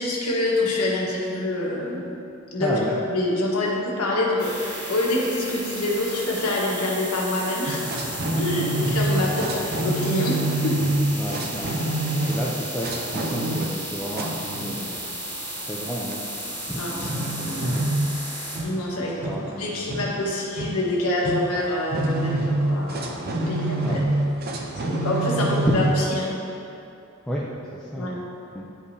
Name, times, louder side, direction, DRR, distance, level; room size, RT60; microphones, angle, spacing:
voice 1, 0.0-2.1 2.5-2.8 3.1-7.8 8.3-10.8 16.7-17.1 18.6-19.1 19.6-24.0 24.8-26.4 27.9-28.1, left 1 dB, 85° left, -4 dB, 1.4 m, -26 dB
voice 2, 2.6-3.0 8.3-9.0 9.2-9.5 11.2-11.8 12.3-15.0 15.6-16.3 16.7-17.7 19.0-20.3 23.8-24.0 25.3-25.5 27.3-27.5 27.7-28.2 28.5-28.7, equal, 5° left, -6 dB, 0.4 m, -32 dB
sound 1, 4.4-18.6, right 1 dB, 20° right, 1.5 m, -34 dB
sound 2, 7.7-26.0, right 1 dB, 45° right, 0.6 m, -27 dB
10.0 x 5.1 x 2.7 m, 2.7 s
head